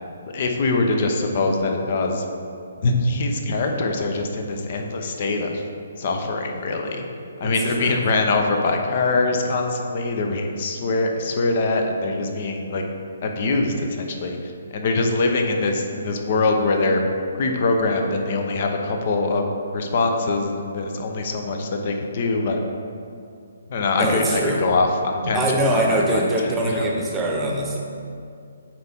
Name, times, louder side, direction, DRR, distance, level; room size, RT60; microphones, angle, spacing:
voice 1, 0.2-2.2 2.8-5.6 6.0-7.0 7.4-12.8 13.2-17.0 17.3-19.5 19.7-22.6 23.7-26.9, left 3 dB, 45° left, 3 dB, 0.8 m, -23 dB
voice 2, 23.9-24.6 25.3-27.8, right 1 dB, 15° right, -1 dB, 0.9 m, -23 dB
7.8 x 4.6 x 3.6 m, 2.4 s
figure-of-eight pair, 140°, 0 cm